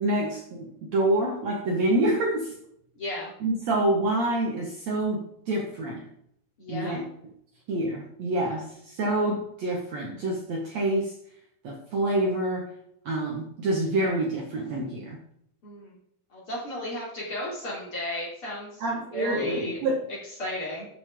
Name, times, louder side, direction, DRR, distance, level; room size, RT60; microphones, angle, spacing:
voice 1, 0.0-2.5 3.4-6.1 6.7-7.1 7.7-11.1 11.6-12.7 13.1-15.2 18.8-20.0, right 1 dB, 55° right, -1 dB, 2.1 m, -27 dB
voice 2, 3.0-3.3 6.6-7.1 15.6-16.0 16.3-18.8 19.1-19.8 20.4-20.9, left 1 dB, 35° left, -5 dB, 3.6 m, -34 dB
13.0 x 6.8 x 3.7 m, 0.71 s
omnidirectional pair, 4.5 m